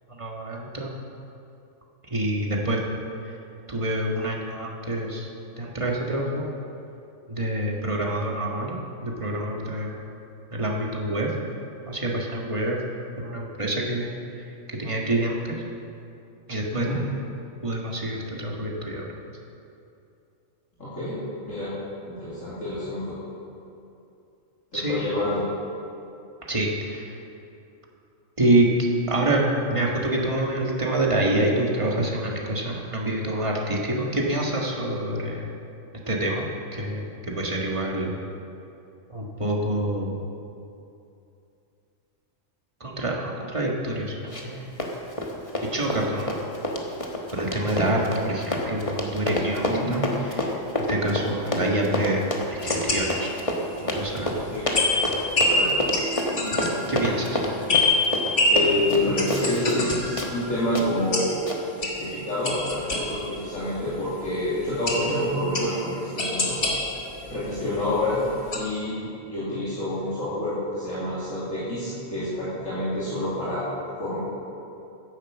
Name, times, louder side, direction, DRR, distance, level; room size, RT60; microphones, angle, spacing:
voice 1, 0.1-0.9 2.1-2.8 3.2-3.3 3.7-5.3 5.6-6.5 7.3-10.0 10.5-11.3 11.9-12.8 13.2-14.2 14.7-15.6 16.5-16.9 17.6-19.1 24.7-25.0 26.5-27.2 28.4-29.4 29.7-35.5 36.1-36.5 36.7-38.1 39.1-40.2 42.8-44.7 45.7-46.4 47.3-50.0 50.4-53.3 53.8-54.4 56.9-57.4, right 1 dB, 25° right, -2 dB, 1.7 m, -26 dB
voice 2, 16.7-17.0 20.8-21.2 21.4-21.7 22.0-23.1 24.7-25.4 49.7-50.0 54.5-54.6 55.4-55.9 58.5-61.3 61.9-66.6 67.2-68.2 68.5-69.0 69.3-73.6 74.0-74.2, left 1 dB, 75° left, -11 dB, 3.1 m, -28 dB
Run, 44.3-44.5 44.8-59.9 60.2-60.3 60.7-60.9 61.5-61.6, left 1 dB, 25° left, 1.3 m, -28 dB
sound 1, 52.6-53.6 54.0-54.1 54.7-63.6 64.3-64.4 64.9-67.9 68.2-68.6, left 2 dB, 50° left, 1.9 m, -26 dB
10.5 x 9.9 x 7.2 m, 2.7 s
omnidirectional pair, 1.4 m